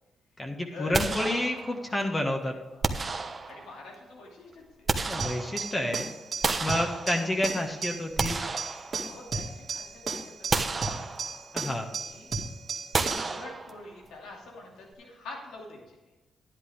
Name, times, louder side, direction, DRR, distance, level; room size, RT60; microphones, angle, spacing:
voice 1, 0.4-2.5 5.1-6.1 6.6-8.4 11.5-11.9, left 1 dB, 25° left, 2 dB, 1.5 m, -29 dB
sound 1, 0.9-2.0 2.8-3.9 4.5-5.9 6.4-7.5 8.0-9.4 9.8-10.0 10.5-11.6 12.9-14.1, right 4 dB, 35° right, 1.0 m, -31 dB
voice 2, 2.9-4.6 6.6-6.7 9.0-11.2 12.0-12.4 13.2-15.8, left 3 dB, 90° left, -1 dB, 2.6 m, -46 dB
sound 2, 5.2-13.4, right 5 dB, 55° right, 2.1 m, -35 dB
11.0 x 10.5 x 3.6 m, 1.1 s
cardioid pair, 80°, 0 cm